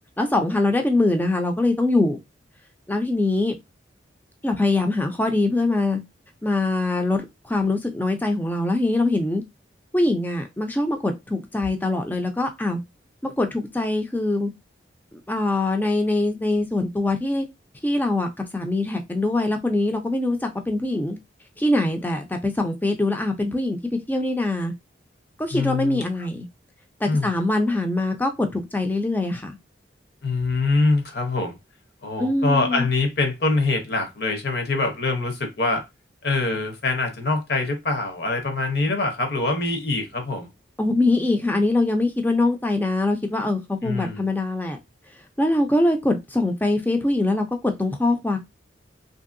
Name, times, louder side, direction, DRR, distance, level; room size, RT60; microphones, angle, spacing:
voice 1, 0.2-2.2 2.9-3.6 4.4-6.0 6.4-9.4 9.9-12.8 13.2-14.5 15.1-17.5 17.8-21.2 21.6-23.8 24.1-24.7 25.4-26.5 27.0-29.5 32.2-32.9 40.8-44.8 45.4-48.4, left 2 dB, 10° left, 0.4 m, -23 dB
voice 2, 25.5-26.0 27.1-27.3 30.2-31.6 32.0-35.9 36.2-40.5 43.8-44.3, left 3 dB, 55° left, 0.9 m, -24 dB
2.9 x 2.7 x 2.5 m
head